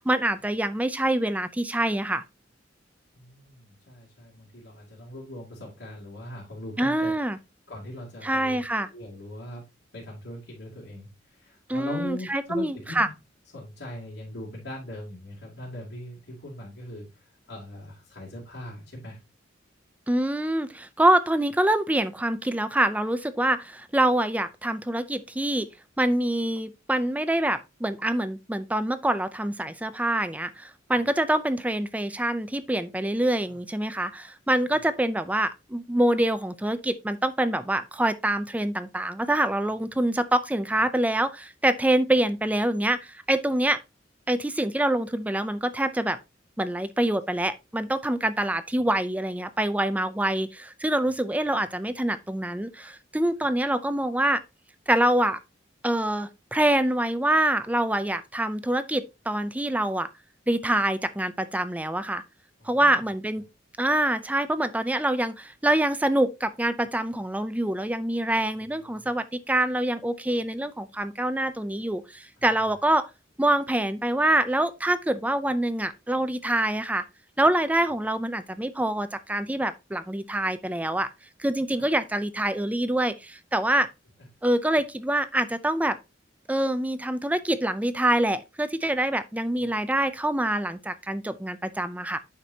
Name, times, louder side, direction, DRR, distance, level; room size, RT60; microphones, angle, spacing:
voice 1, 0.0-2.2 6.8-7.4 8.2-8.9 11.7-13.1 20.1-25.7 26.0-43.8 44.3-46.2 46.6-54.4 54.9-55.4 55.8-60.1 60.5-62.2 62.6-63.4 63.8-73.1 73.4-77.0 77.4-81.1 81.4-83.9 84.4-86.0 86.5-92.2, right 1 dB, 10° right, 0.5 m, -25 dB
voice 2, 3.1-7.2 7.7-9.6 9.9-13.1 13.5-19.2 30.9-31.0 33.5-33.6 34.7-34.8 62.6-63.0 68.7-69.1 89.6-89.8, left 1 dB, 65° left, 2.7 m, -41 dB
9.0 x 6.0 x 2.8 m
head